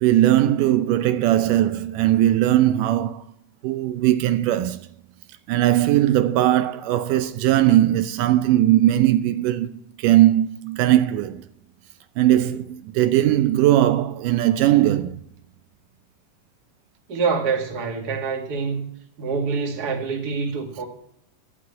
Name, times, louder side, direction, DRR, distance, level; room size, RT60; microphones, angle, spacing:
voice 1, 0.0-3.2 3.6-4.8 5.5-11.4 12.2-15.2, right 13 dB, 80° right, 2.2 m, -19 dB
voice 2, 17.1-18.9 19.2-20.8, right 5 dB, 35° right, 2.1 m, -26 dB
12.0 x 6.2 x 9.5 m
omnidirectional pair, 3.7 m